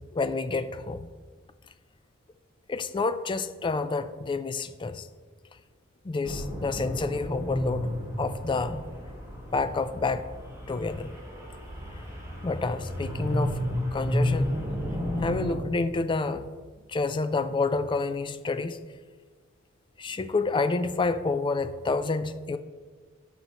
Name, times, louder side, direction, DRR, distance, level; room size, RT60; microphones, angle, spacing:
voice 1, 0.1-1.1 2.7-5.1 6.0-7.9 8.2-8.8 9.5-10.3 10.7-11.1 12.4-13.6 13.9-14.6 15.2-16.5 16.9-18.8 20.0-22.6, left 3 dB, 25° left, 11 dB, 0.3 m, -28 dB
sound 1, 6.2-15.6, equal, 15° right, 1.6 m, -32 dB
13.0 x 5.7 x 2.9 m, 1.4 s
head